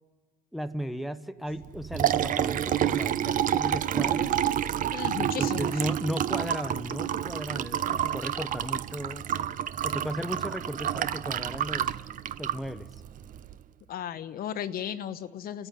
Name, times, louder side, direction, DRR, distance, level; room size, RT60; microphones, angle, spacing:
voice 1, 0.5-4.5 5.1-9.2 9.8-12.0 12.4-13.0, equal, ahead, 8 dB, 0.9 m, -35 dB
Liquid, 1.6-13.5, right 10 dB, 50° right, 0.7 m, -29 dB
voice 2, 4.9-5.7 13.9-15.7, left 10 dB, 60° left, 11 dB, 1.0 m, -35 dB
30.0 x 14.0 x 9.5 m, 1.4 s
cardioid pair, 110°, 17 cm